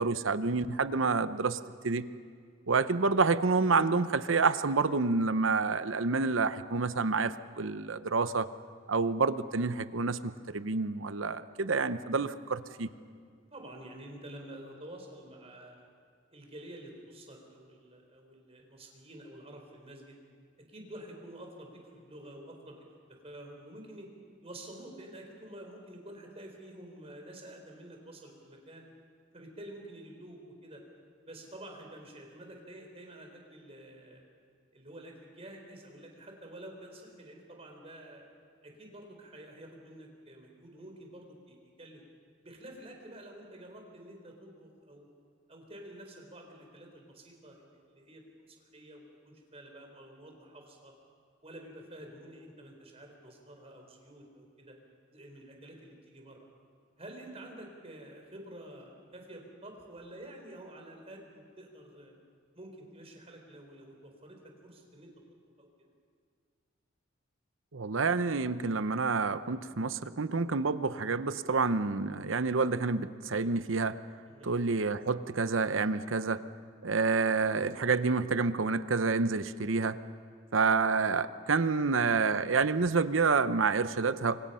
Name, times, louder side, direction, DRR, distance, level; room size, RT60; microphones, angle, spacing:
voice 1, 0.0-2.1 2.7-8.5 8.9-12.9 67.7-74.0 74.4-76.4 76.8-80.0 80.5-84.4, right 4 dB, 75° right, 13 dB, 0.8 m, -28 dB
voice 2, 13.5-15.9 16.3-20.2 20.6-22.9 23.2-24.1 24.4-28.9 29.3-30.8 31.2-34.2 34.7-38.2 38.6-42.0 42.4-45.1 45.5-48.2 48.5-50.9 51.4-54.8 55.1-56.4 57.0-62.1 62.5-65.7 74.3-74.6, right 1 dB, 30° right, 2 dB, 4.4 m, -49 dB
28.5 x 24.5 x 5.7 m, 2.1 s
head